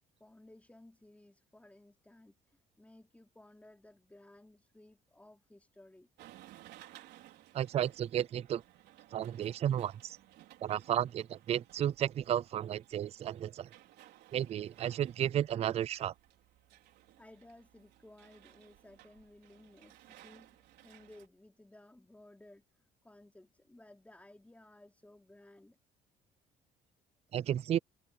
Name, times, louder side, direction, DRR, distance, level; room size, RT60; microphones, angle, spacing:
voice 1, 0.0-6.1 17.2-25.8, left 1 dB, 10° left, 4.3 m, -58 dB
sound 1, 6.2-21.3, right 14 dB, 80° right, 4.1 m, -59 dB
voice 2, 7.5-8.6 9.1-10.2 10.6-13.7 14.3-16.1 27.3-27.8, right 10 dB, 40° right, 0.4 m, -33 dB
cardioid pair, 110°, 17 cm